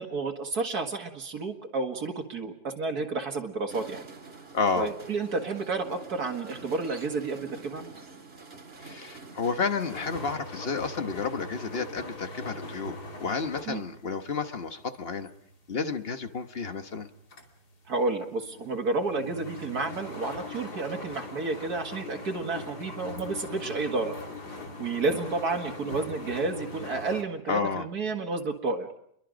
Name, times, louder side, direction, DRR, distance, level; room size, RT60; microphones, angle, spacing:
voice 1, 0.0-4.1 4.8-7.9 13.7-13.8 17.9-24.2 24.8-28.9, right 3 dB, 70° right, 3 dB, 2.3 m, -31 dB
sound 1, 3.7-10.4, right 4 dB, 35° right, 2.0 m, -46 dB
voice 2, 4.5-4.9 8.8-15.3 15.7-17.1 27.5-27.8, left 4 dB, 40° left, 8 dB, 1.3 m, -31 dB
sound 2, 9.9-16.6 17.0-27.2, left 2 dB, 75° left, 3.3 m, -41 dB
29.0 x 22.5 x 5.1 m, 0.72 s
omnidirectional pair, 1.7 m